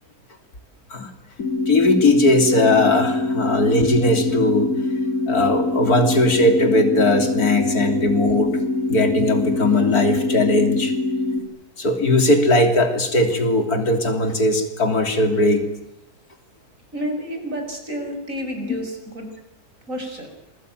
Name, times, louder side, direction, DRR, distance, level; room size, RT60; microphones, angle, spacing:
sound 1, 1.4-11.4, left 2 dB, 60° left, 3.7 m, -24 dB
voice 1, 1.7-4.7 5.3-8.5 8.9-10.9 11.8-15.6, left 2 dB, 80° left, 6 dB, 3.7 m, -19 dB
voice 2, 16.9-19.3 19.9-20.3, equal, 60° right, 5 dB, 6.3 m, -30 dB
27.5 x 21.5 x 9.3 m, 0.85 s
omnidirectional pair, 1.6 m